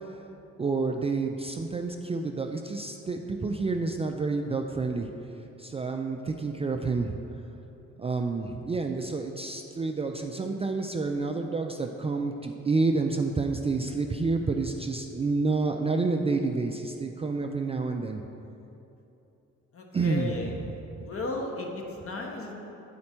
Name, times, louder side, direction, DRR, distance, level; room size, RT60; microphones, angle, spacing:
voice 1, 0.6-5.1 5.6-7.2 8.0-18.2 19.9-20.5 20.9-21.1, right 3 dB, 20° right, 3 dB, 0.3 m, -29 dB
voice 2, 19.7-20.6 21.0-22.7, left 2 dB, 45° left, 0 dB, 1.2 m, -35 dB
9.4 x 4.3 x 4.4 m, 2.9 s
cardioid pair, 90°, 30 cm